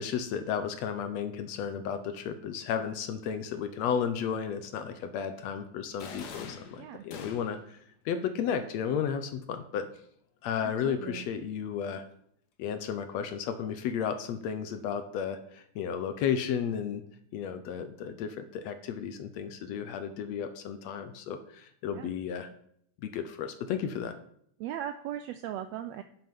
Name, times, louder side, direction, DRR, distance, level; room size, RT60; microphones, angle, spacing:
voice 1, 0.0-7.8 8.1-9.9 10.4-12.0 12.6-17.0 17.3-22.5 23.0-24.2, left 7 dB, 70° left, 9 dB, 1.8 m, -33 dB
sound 1, 6.0-7.7, left 5 dB, 90° left, 0.9 m, -44 dB
voice 2, 10.6-11.3 21.9-22.1 24.6-26.0, right 11 dB, 85° right, 9 dB, 1.5 m, -38 dB
10.0 x 7.8 x 5.3 m, 0.68 s
omnidirectional pair, 3.5 m